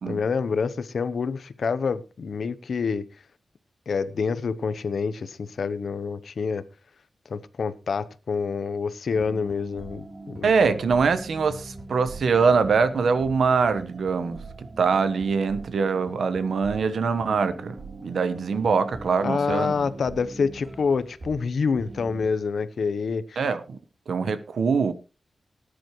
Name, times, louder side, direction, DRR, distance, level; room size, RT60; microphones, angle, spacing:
voice 1, 0.1-3.0 3.9-6.6 7.3-10.5 19.2-23.5, left 5 dB, 65° left, 0.8 m, -27 dB
sound 1, 9.1-21.5 21.8-22.3, right 2 dB, 45° right, 3.6 m, -42 dB
voice 2, 10.4-17.8 18.0-19.7 23.4-23.8 24.1-24.9, right 5 dB, 80° right, 1.2 m, -23 dB
18.5 x 10.0 x 3.1 m
wide cardioid pair, 160°, 0 cm